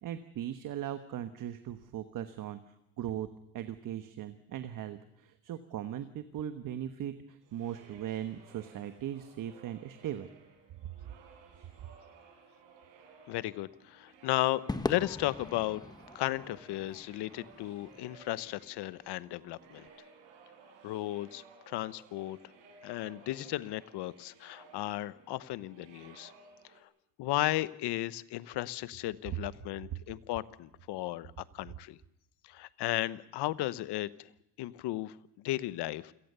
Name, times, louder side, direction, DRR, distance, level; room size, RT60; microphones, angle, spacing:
voice 1, 0.0-2.6 3.0-3.3 3.5-10.3, right 11 dB, 50° right, 10 dB, 1.2 m, -39 dB
sound 1, 7.4-26.8, right 5 dB, 90° right, 6.1 m, -58 dB
voice 2, 13.3-14.6 14.9-15.8 16.1-19.9 20.8-22.4 22.8-26.3 27.2-32.0 32.4-34.3 34.6-36.1, left 16 dB, 70° left, 17 dB, 1.0 m, -35 dB
Crowd / Fireworks, 14.7-19.2, left 2 dB, 10° left, 1.1 m, -41 dB
28.0 x 18.0 x 6.8 m, 0.83 s
cardioid pair, 165°, 42 cm